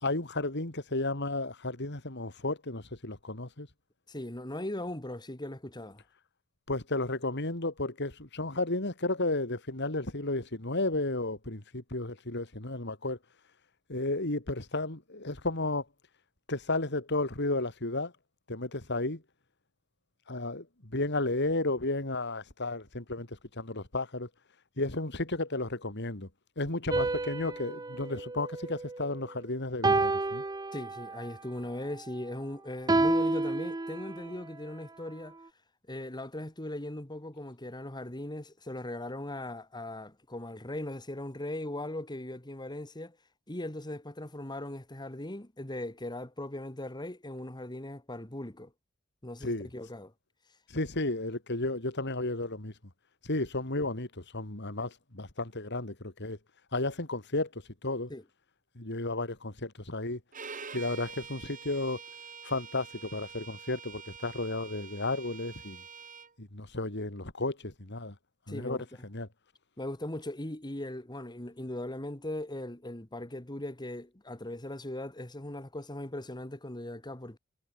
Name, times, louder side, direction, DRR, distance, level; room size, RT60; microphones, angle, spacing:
voice 1, 0.0-3.7 6.7-13.2 13.9-15.8 16.5-18.1 18.5-19.2 20.3-24.3 24.8-26.3 26.6-30.4 49.4-49.7 50.7-52.7 53.3-56.4 56.7-57.5 57.8-58.1 58.8-60.2 60.7-62.0 62.4-65.8 66.4-68.1 68.5-69.3, left 2 dB, 55° left, 3.5 m, -33 dB
voice 2, 4.1-6.0 30.7-35.4 35.9-43.2 43.5-48.7 49.2-50.1 58.1-58.2 68.5-69.1 69.8-77.4, left 1 dB, 20° left, 2.1 m, -39 dB
sound 1, 26.9-29.3 29.8-31.3 32.9-34.4, right 2 dB, 20° right, 0.6 m, -30 dB
Bowed string instrument, 60.3-66.3, right 6 dB, 40° right, 5.2 m, -46 dB
head